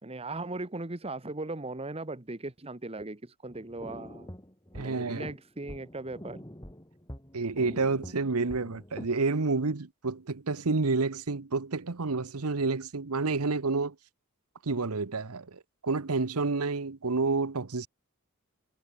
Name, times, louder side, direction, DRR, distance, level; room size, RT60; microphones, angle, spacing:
voice 1, 0.0-4.3 4.7-6.4, right 2 dB, 25° right, 1.3 m, -38 dB
sound 1, 3.5-9.2, equal, 15° left, 4.1 m, -45 dB
voice 2, 4.7-5.3 7.3-13.9 14.6-17.9, right 3 dB, 85° right, 1.0 m, -29 dB
head